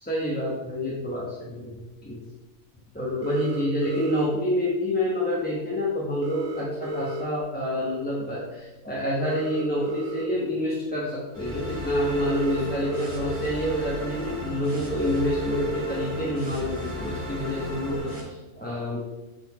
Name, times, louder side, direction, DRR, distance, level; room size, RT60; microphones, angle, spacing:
voice 1, 0.0-2.2 2.9-19.0, left 1 dB, 10° left, -6 dB, 0.8 m, -28 dB
sound 1, 3.2-4.2 6.2-7.2 9.2-10.2 12.2-13.2 13.8-13.9 14.9-15.9 17.9-18.0, equal, 60° right, 1.2 m, -32 dB
sound 2, 11.3-18.2, equal, 85° right, 2.7 m, -35 dB
8.8 x 4.2 x 2.9 m, 1.1 s
omnidirectional pair, 1.5 m